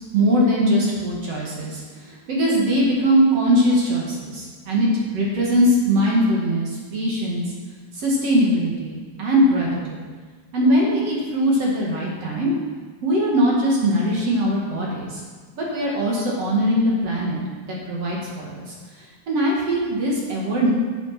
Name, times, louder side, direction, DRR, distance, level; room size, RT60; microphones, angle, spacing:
voice 1, 0.1-4.9 5.1-7.4 7.9-10.0 10.5-12.5 13.0-15.2 15.6-17.4 17.7-20.7, equal, 55° right, -4 dB, 2.9 m, -21 dB
9.1 x 8.7 x 6.0 m, 1.5 s
omnidirectional pair, 3.4 m